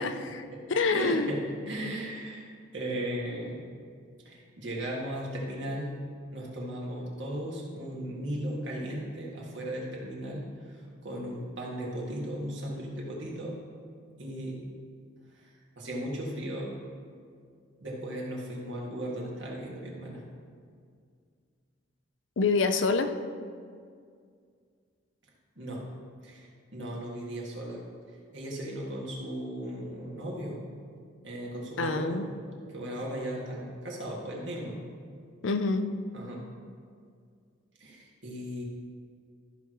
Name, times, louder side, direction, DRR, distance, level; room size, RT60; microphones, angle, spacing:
voice 1, 0.0-0.4 0.7-1.3 22.4-23.1 31.8-32.3 35.4-35.9, left 4 dB, 70° left, 8 dB, 0.5 m, -26 dB
voice 2, 0.9-2.4 2.7-3.6 4.3-5.9 6.3-13.6 14.2-14.6 15.8-16.7 17.8-20.2 25.6-25.8 26.2-27.8 28.3-30.6 31.2-32.2 32.6-34.8 36.1-36.4 37.8-38.6, right 1 dB, 65° right, -3 dB, 1.9 m, -36 dB
14.0 x 6.1 x 3.1 m, 2.1 s
head